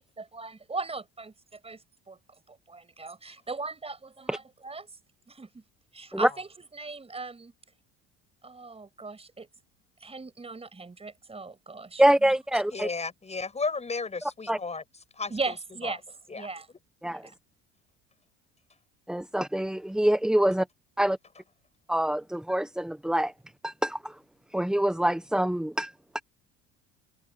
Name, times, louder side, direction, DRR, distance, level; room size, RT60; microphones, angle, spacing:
voice 1, 0.0-1.8 2.1-2.2 2.5-4.9 5.3-5.6 5.9-7.5 8.4-9.5 10.0-12.6 15.3-16.0 16.3-16.7 17.1-17.3, right 3 dB, 20° right, 5.6 m, -38 dB
voice 2, 12.0-12.9 14.5-14.6 17.0-17.2 19.1-20.7 21.0-21.2 21.9-23.3 23.6-24.1 24.5-26.2, right 1 dB, ahead, 0.7 m, -25 dB
voice 3, 12.7-14.8 15.2-15.5 15.8-16.0 16.3-16.5, left 4 dB, 20° left, 7.8 m, -33 dB
supercardioid pair, 95°, 30 cm